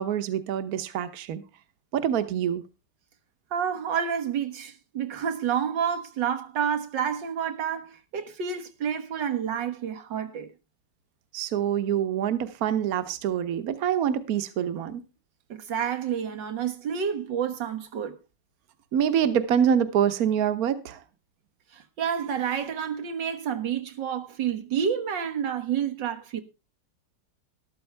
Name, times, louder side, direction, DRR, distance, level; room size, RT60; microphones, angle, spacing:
voice 1, 0.0-1.4 1.9-2.6 11.3-15.0 18.9-21.0, right 9 dB, 60° right, 1.4 m, -25 dB
voice 2, 3.5-10.5 15.5-18.2 21.7-26.4, right 8 dB, 90° right, 2.1 m, -29 dB
13.5 x 12.5 x 3.4 m
omnidirectional pair, 1.9 m